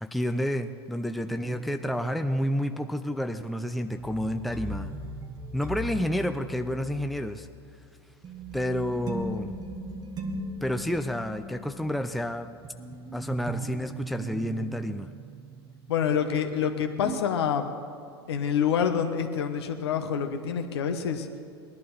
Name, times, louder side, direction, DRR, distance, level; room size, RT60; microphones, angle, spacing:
voice 1, 0.0-4.9 5.5-7.5 8.5-9.6 10.6-12.5 13.1-15.1, equal, ahead, 7 dB, 0.6 m, -30 dB
sound 1, 1.4-16.7 17.0-17.2, right 2 dB, 30° right, 1.2 m, -39 dB
voice 2, 15.9-17.7 18.3-21.3, left 7 dB, 70° left, 6 dB, 1.3 m, -27 dB
19.5 x 11.5 x 4.2 m, 2.4 s
hypercardioid pair, 90°, 14 cm